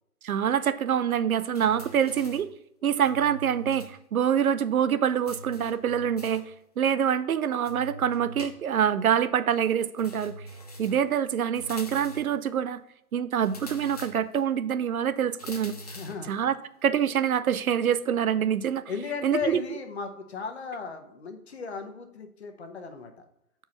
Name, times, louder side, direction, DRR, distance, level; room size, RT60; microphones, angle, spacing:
voice 1, 0.2-2.5 2.8-6.4 6.8-10.4 10.8-12.8 13.1-15.7 16.3-16.5 16.8-18.8 19.2-19.6, right 8 dB, 65° right, 14 dB, 0.6 m, -25 dB
sound 1, 1.5-2.5 3.0-4.0 4.2-4.3 5.3-6.5 7.7-8.9 10.0-11.1 11.6-12.4 13.4-14.5 15.4-16.3, equal, 25° left, 0.6 m, -43 dB
voice 2, 15.9-16.6 18.9-23.1, left 5 dB, 45° left, 5 dB, 1.1 m, -36 dB
6.1 x 4.7 x 5.4 m, 0.80 s
hypercardioid pair, 160°, 45 cm